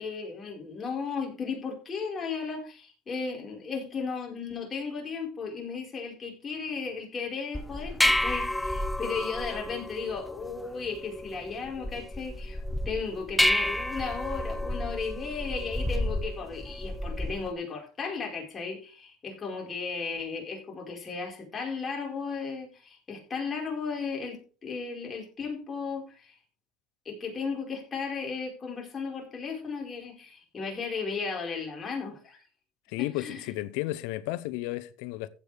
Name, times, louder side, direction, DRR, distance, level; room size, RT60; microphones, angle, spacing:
voice 1, 0.0-26.3 27.0-32.4 33.0-33.5, left 5 dB, 25° left, 4.8 m, -35 dB
sound 1, 7.5-17.5, left 1 dB, 5° left, 0.7 m, -30 dB
voice 2, 32.9-35.3, left 17 dB, 80° left, 0.8 m, -33 dB
15.5 x 8.2 x 3.5 m
cardioid pair, 125°, 0 cm